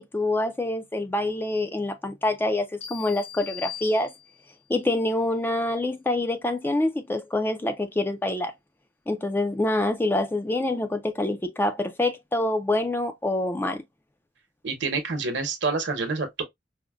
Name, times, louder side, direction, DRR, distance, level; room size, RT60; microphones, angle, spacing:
voice 1, 0.0-4.1 4.7-8.5 9.1-13.8, left 2 dB, 10° left, 0.3 m, -26 dB
sound 1, 2.8-4.6, left 10 dB, 60° left, 1.4 m, -40 dB
voice 2, 14.6-16.4, right 4 dB, 65° right, 0.9 m, -27 dB
4.9 x 2.1 x 2.3 m
head